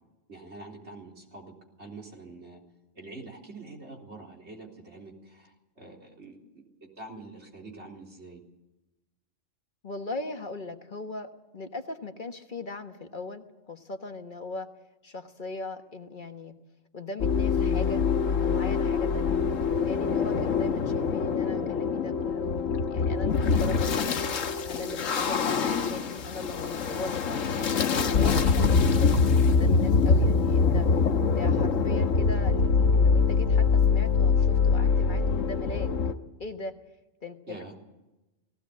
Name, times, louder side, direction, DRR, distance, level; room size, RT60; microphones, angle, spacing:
voice 1, 0.3-1.5 1.8-2.6 2.9-8.4 37.5-37.7, right 2 dB, 60° right, 0 dB, 4.1 m, -45 dB
voice 2, 9.8-14.7 15.0-16.5 16.9-18.0 18.4-24.2 24.7-27.5 27.9-29.2 29.5-31.1 31.3-35.9 36.4-36.7 37.2-37.6, left 3 dB, 40° left, 6 dB, 1.5 m, -39 dB
sound 1, 17.2-36.1, left 5 dB, 85° left, 1.5 m, -24 dB
18.5 x 17.0 x 8.5 m, 1.0 s
omnidirectional pair, 1.3 m